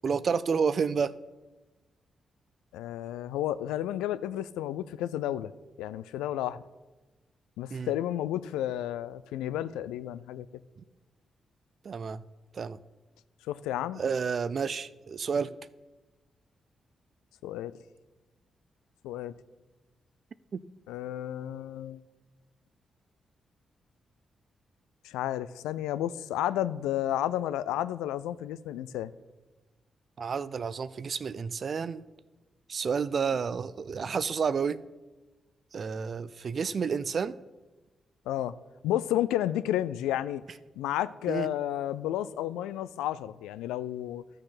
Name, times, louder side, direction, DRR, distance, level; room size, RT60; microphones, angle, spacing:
voice 1, 0.0-1.1 7.7-7.9 11.8-12.2 12.5-12.8 14.0-15.6 20.5-20.6 30.2-32.0 32.7-34.8 35.7-37.4 41.3-41.5, right 6 dB, 55° right, 17 dB, 0.5 m, -30 dB
voice 2, 2.7-5.5 5.8-6.6 7.6-10.5 13.5-14.0 17.4-17.7 19.0-19.3 20.9-22.0 25.0-29.1 38.3-38.5 38.8-40.4 40.8-44.2, left 12 dB, 90° left, 15 dB, 0.4 m, -31 dB
12.5 x 6.5 x 5.8 m, 1.1 s
supercardioid pair, 50°, 0 cm